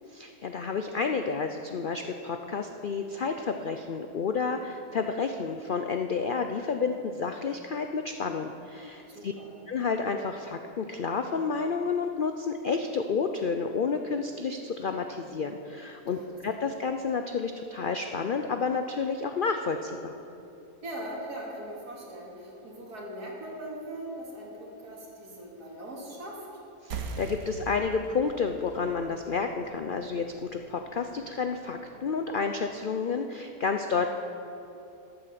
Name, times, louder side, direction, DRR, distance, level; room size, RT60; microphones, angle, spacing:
voice 1, 0.1-9.3 9.7-20.1 26.8-34.1, left 5 dB, 85° left, 6 dB, 0.4 m, -30 dB
voice 2, 9.1-9.6 16.1-16.4 20.8-26.5, right 1 dB, 85° right, -3 dB, 2.9 m, -40 dB
sound 1, 26.9-32.0, right 5 dB, 70° right, 1.3 m, -43 dB
13.0 x 8.8 x 6.9 m, 2.8 s
omnidirectional pair, 1.6 m